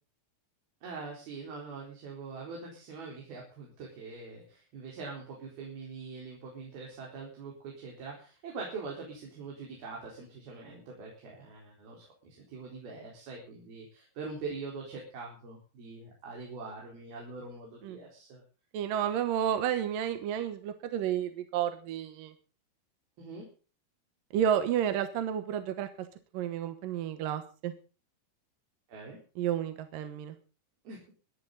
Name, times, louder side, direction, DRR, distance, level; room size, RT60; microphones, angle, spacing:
voice 1, 0.8-18.4 23.2-23.5 28.9-29.2 30.9-31.0, right 4 dB, 90° right, -2 dB, 6.0 m, -43 dB
voice 2, 18.7-22.3 24.3-25.9 26.3-27.7 29.4-30.4, right 9 dB, 70° right, 9 dB, 2.8 m, -31 dB
25.5 x 10.5 x 4.0 m, 0.37 s
omnidirectional pair, 4.2 m